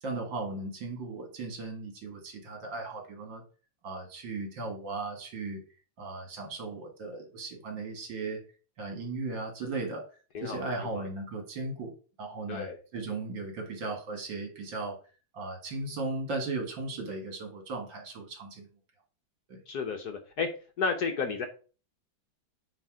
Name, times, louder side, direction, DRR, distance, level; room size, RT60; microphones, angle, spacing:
voice 1, 0.0-3.4 3.8-5.6 6.0-8.4 8.8-10.0 10.4-11.9 12.2-15.0 15.3-18.7 19.5-19.6, right 3 dB, 65° right, 3 dB, 2.5 m, -36 dB
voice 2, 10.3-11.1 12.5-12.8 19.7-20.5 20.8-21.5, left 5 dB, 60° left, 5 dB, 1.3 m, -32 dB
9.2 x 3.7 x 4.8 m, 0.37 s
omnidirectional pair, 2.2 m